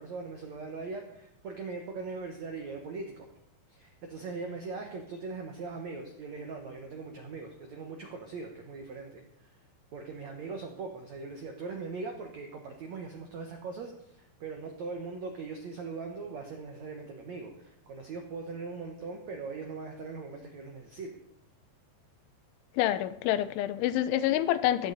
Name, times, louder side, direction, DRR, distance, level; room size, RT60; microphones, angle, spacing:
voice 1, 0.0-3.3 3.7-9.6 9.9-21.1, right 4 dB, 80° right, 3 dB, 1.6 m, -40 dB
voice 2, 22.8-24.9, left 12 dB, 90° left, 14 dB, 3.1 m, -27 dB
15.5 x 12.5 x 4.1 m, 0.73 s
omnidirectional pair, 5.3 m